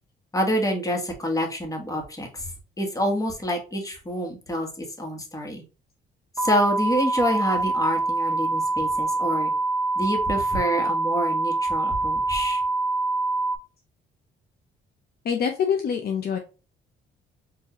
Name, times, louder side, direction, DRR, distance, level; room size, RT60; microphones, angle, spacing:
voice 1, 0.3-2.5 2.8-5.6 6.4-9.5 10.0-12.6, equal, 15° left, 2 dB, 1.4 m, -27 dB
sound 1, 6.4-13.6, right 3 dB, 20° right, 1.7 m, -25 dB
voice 2, 15.2-16.4, left 7 dB, 50° left, 4 dB, 0.6 m, -25 dB
4.7 x 2.7 x 3.0 m, 0.32 s
cardioid pair, 90°, 20 cm